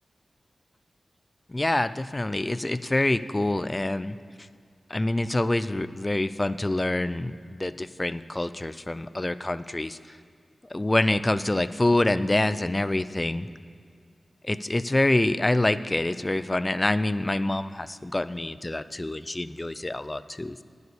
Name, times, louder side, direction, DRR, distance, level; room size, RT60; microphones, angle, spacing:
voice 1, 1.5-4.2 4.9-10.0 10.7-13.5 14.4-20.6, left 1 dB, 25° left, 14 dB, 0.4 m, -26 dB
10.5 x 7.2 x 6.8 m, 2.1 s
cardioid pair, 50°, 0 cm